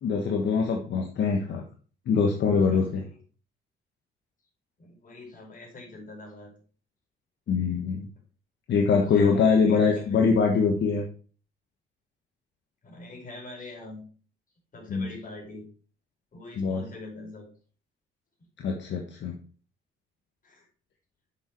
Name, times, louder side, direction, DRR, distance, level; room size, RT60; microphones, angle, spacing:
voice 1, 0.0-1.6 2.1-3.0 7.5-8.1 8.7-11.0 14.9-15.1 16.6-16.8 18.6-19.4, left 5 dB, 65° left, 1 dB, 1.4 m, -23 dB
voice 2, 2.7-3.2 4.8-6.5 8.9-10.2 12.8-14.1 14.7-15.7 16.3-17.5 18.4-18.5 20.4-20.7, left 2 dB, 45° left, -1 dB, 4.9 m, -44 dB
7.7 x 6.4 x 4.6 m, 0.40 s
cardioid pair, 90°, 20 cm